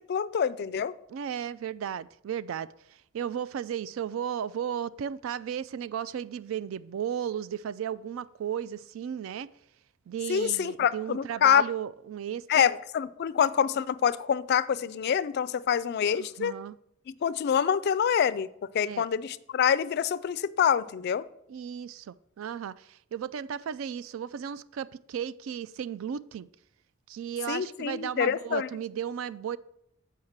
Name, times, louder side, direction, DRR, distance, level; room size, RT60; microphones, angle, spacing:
voice 1, 0.1-0.9 10.3-11.6 12.5-16.5 17.1-18.5 18.7-21.2 27.5-28.7, left 8 dB, 55° left, 0.3 m, -26 dB
voice 2, 1.1-2.7 3.1-9.5 10.1-12.7 16.2-16.8 18.8-19.1 21.5-26.5 27.1-29.6, right 8 dB, 85° right, 0.3 m, -35 dB
7.2 x 4.6 x 6.5 m
head